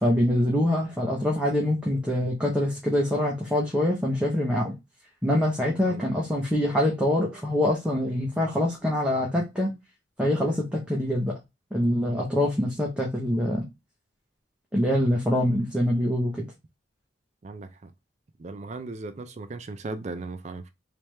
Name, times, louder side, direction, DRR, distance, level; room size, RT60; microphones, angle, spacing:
voice 1, 0.0-4.7 5.2-9.7 10.2-11.3 11.7-13.6 14.7-16.5, left 1 dB, 5° right, 0.8 m, -24 dB
voice 2, 17.4-17.9 18.4-20.7, right 3 dB, 35° right, 0.4 m, -37 dB
3.4 x 3.2 x 3.1 m
head